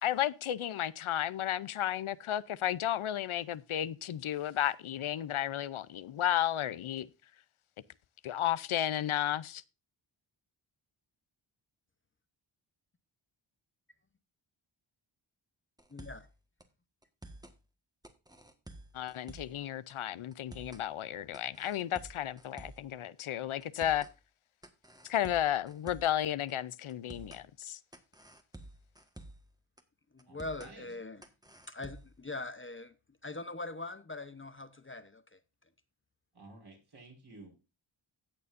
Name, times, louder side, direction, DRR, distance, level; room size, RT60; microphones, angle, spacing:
voice 1, 0.0-7.1 8.2-9.6 18.9-24.1 25.1-27.8, left 11 dB, 90° left, 0.7 m, -33 dB
sound 1, 15.8-16.3 16.6-16.7 17.0-17.6 18.0-19.6 19.9-20.0 20.3-20.9 21.3-22.9 23.2-23.3 23.6-24.1 24.6-26.2 26.5-26.6 26.9-27.4 27.9-29.5 29.8-29.9 30.2-30.7 31.2-32.2, right 1 dB, 10° right, 1.5 m, -50 dB
voice 2, 15.9-16.2 30.3-31.2 31.7-32.9 33.2-35.1, left 2 dB, 25° left, 0.9 m, -41 dB
voice 3, 30.3-30.9 36.3-37.5, right 2 dB, 50° right, 4.8 m, -53 dB
17.0 x 6.8 x 2.6 m
wide cardioid pair, 85°, 48 cm